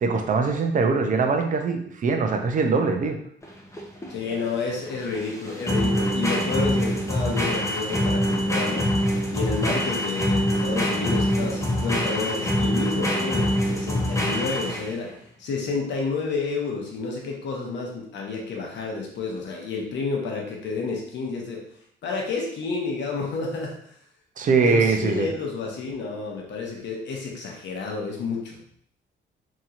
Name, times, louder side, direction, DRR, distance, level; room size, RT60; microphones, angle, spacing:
voice 1, 0.0-3.2 24.4-25.3, right 4 dB, 40° right, 4 dB, 0.5 m, -22 dB
sound 1, 3.4-15.1, equal, 15° left, 0.6 m, -25 dB
voice 2, 4.1-8.9 9.3-15.1 15.4-21.6 22.0-23.7 24.6-28.6, left 4 dB, 65° left, 0 dB, 0.9 m, -30 dB
2.9 x 2.8 x 2.4 m, 0.68 s
cardioid pair, 90°, 20 cm